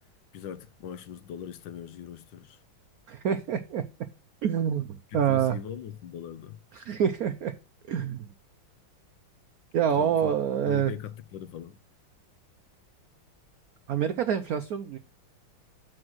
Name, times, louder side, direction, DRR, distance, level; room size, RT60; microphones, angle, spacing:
voice 1, 0.3-2.6 5.1-6.6 9.9-10.4 10.6-11.8, left 8 dB, 70° left, 1.4 m, -40 dB
voice 2, 3.1-3.8 4.4-5.5 6.7-7.5 7.9-8.3 9.7-10.9 13.9-15.0, right 8 dB, 75° right, 0.8 m, -26 dB
7.7 x 4.8 x 6.1 m
omnidirectional pair, 2.3 m